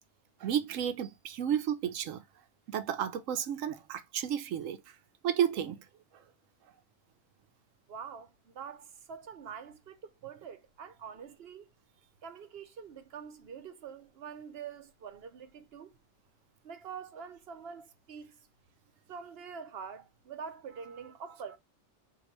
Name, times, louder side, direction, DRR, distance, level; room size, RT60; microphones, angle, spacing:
voice 1, 0.4-2.2 2.7-5.0 5.2-5.9 6.1-6.2, right 9 dB, 90° right, 1.0 m, -32 dB
voice 2, 7.9-11.7 12.2-16.0 16.6-18.5 19.1-21.6, right 6 dB, 60° right, 0.9 m, -45 dB
4.8 x 2.6 x 2.9 m
omnidirectional pair, 1.3 m